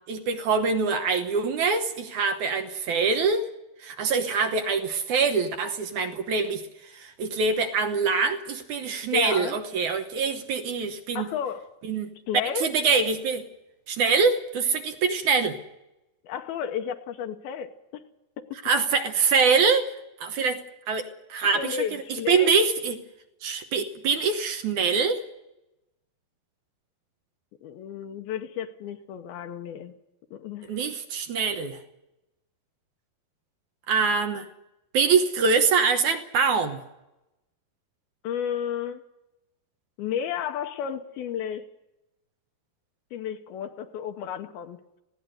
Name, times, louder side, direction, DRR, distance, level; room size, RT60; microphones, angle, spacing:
voice 1, 0.1-3.5 3.8-6.6 6.9-11.3 11.9-12.1 12.6-13.5 13.9-15.6 18.7-19.9 20.2-20.6 20.9-21.8 22.1-23.0 23.4-25.2 30.7-31.8 33.9-34.5 34.9-36.8, right 5 dB, 65° right, 7 dB, 2.0 m, -24 dB
voice 2, 9.1-9.6 11.2-11.7 12.3-12.7 16.2-18.0 18.4-18.5 20.4-20.5 21.4-22.5 27.6-29.9 30.3-30.8 38.2-39.0 40.0-41.7 43.1-44.8, left 8 dB, 80° left, 5 dB, 2.7 m, -32 dB
20.0 x 16.5 x 7.8 m, 0.93 s
omnidirectional pair, 4.6 m